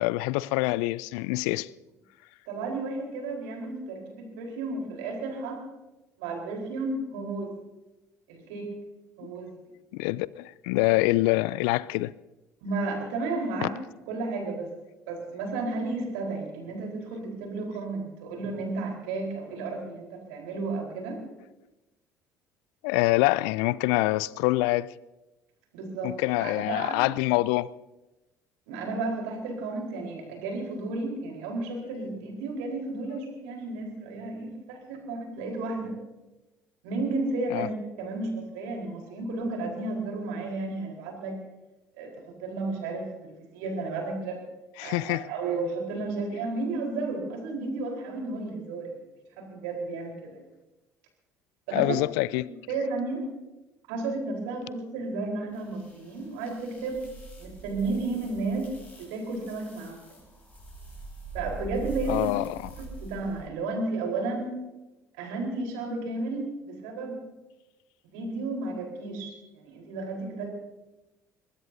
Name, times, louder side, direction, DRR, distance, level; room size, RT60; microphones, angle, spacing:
voice 1, 0.0-1.7 9.2-9.3 9.9-12.1 13.6-13.7 22.8-24.9 26.0-27.7 37.5-37.7 44.8-45.2 51.7-52.5 62.1-62.6, left 20 dB, 65° left, 0.5 m, -25 dB
voice 2, 2.5-5.6 6.2-7.5 8.3-8.7 9.2-9.5 12.6-13.8 14.1-14.7 15.1-21.2 25.7-27.0 28.7-35.9 36.8-41.4 42.0-44.4 44.8-49.0 49.4-50.4 51.7-52.0 52.3-53.3 53.9-57.0 57.4-58.7 59.0-60.0 61.3-62.4 62.8-64.6 65.2-67.2 68.1-70.5, right 3 dB, 65° right, 4.2 m, -33 dB
sound 1, 55.6-63.5, right 3 dB, 15° left, 7.2 m, -43 dB
23.0 x 21.0 x 2.8 m
figure-of-eight pair, 55°, 9 cm